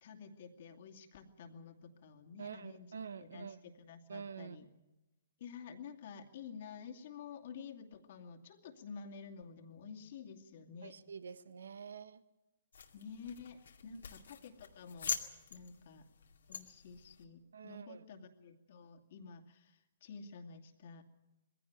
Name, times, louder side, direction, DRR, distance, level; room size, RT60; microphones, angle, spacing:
voice 1, 0.0-4.7 5.4-11.0 12.9-15.1 15.5-16.1 16.5-21.0, left 6 dB, 55° left, 5 dB, 2.5 m, -51 dB
voice 2, 2.4-3.6 4.1-4.6 10.8-12.2 13.9-14.0 17.5-18.0, right 6 dB, 75° right, 14 dB, 1.1 m, -47 dB
sound 1, 12.7-17.2, left 7 dB, 75° left, 2.3 m, -44 dB
21.0 x 16.0 x 9.4 m, 1.0 s
hypercardioid pair, 130°, 0 cm